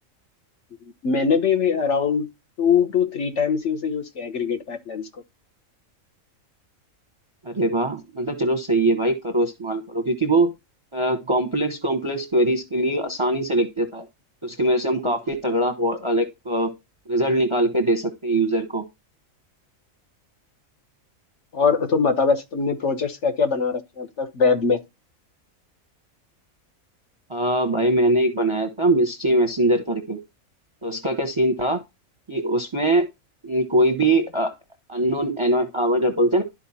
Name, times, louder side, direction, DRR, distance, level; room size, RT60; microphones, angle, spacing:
voice 1, 1.0-2.3 2.6-5.1 15.0-15.1 21.5-24.8, left 5 dB, 60° left, 1.2 m, -22 dB
voice 2, 7.4-10.5 10.9-14.0 14.4-16.7 17.1-18.8 27.3-30.2 30.8-31.8 32.3-33.1 33.4-34.5 34.9-36.4, right 1 dB, 30° right, 0.7 m, -22 dB
12.0 x 4.4 x 2.8 m
omnidirectional pair, 1.4 m